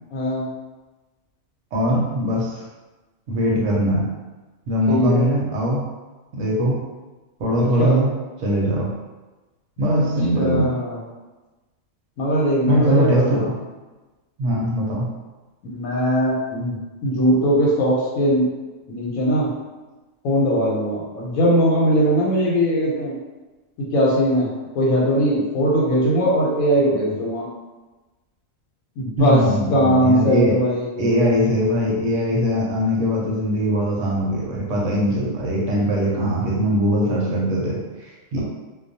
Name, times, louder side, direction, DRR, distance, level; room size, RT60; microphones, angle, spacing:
voice 1, 0.1-0.5 4.9-5.2 7.6-8.1 10.3-11.0 12.2-13.5 15.6-18.5 18.9-19.5 20.2-23.1 23.9-24.5 24.7-27.5 29.0-29.4 29.7-30.9, equal, 85° left, -4 dB, 1.0 m, -20 dB
voice 2, 1.7-2.6 3.3-4.1 4.7-5.8 6.3-6.8 7.4-8.1 8.4-8.9 9.8-10.7 12.6-13.5 14.4-15.1 29.2-30.6 31.0-38.4, equal, 70° right, -3 dB, 0.9 m, -21 dB
2.2 x 2.2 x 2.6 m, 1.2 s
omnidirectional pair, 1.4 m